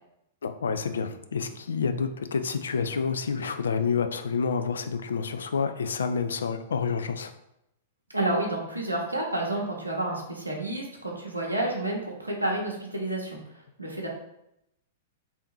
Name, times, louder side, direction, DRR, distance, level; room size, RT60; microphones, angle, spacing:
voice 1, 0.4-7.3, left 5 dB, 65° left, 9 dB, 0.4 m, -28 dB
voice 2, 8.1-13.4 13.8-14.1, right 1 dB, 90° right, -2 dB, 0.8 m, -30 dB
3.5 x 2.7 x 4.4 m, 0.83 s
figure-of-eight pair, 100°, 0 cm